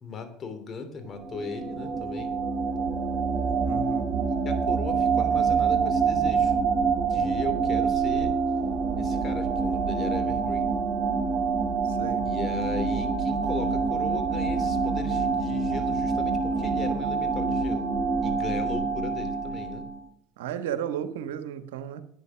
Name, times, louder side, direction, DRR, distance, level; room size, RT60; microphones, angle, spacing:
voice 1, 0.0-2.3 4.4-6.6 7.1-8.3 9.0-10.8 12.2-17.9 18.2-19.9, left 4 dB, 40° left, 7 dB, 3.0 m, -37 dB
sound 1, 1.1-20.0, right 5 dB, 45° right, 2.9 m, -26 dB
voice 2, 3.6-4.1 11.8-12.2 20.4-22.0, right 9 dB, 80° right, 11 dB, 1.2 m, -34 dB
11.0 x 9.6 x 6.2 m, 0.70 s
hypercardioid pair, 75°, 0 cm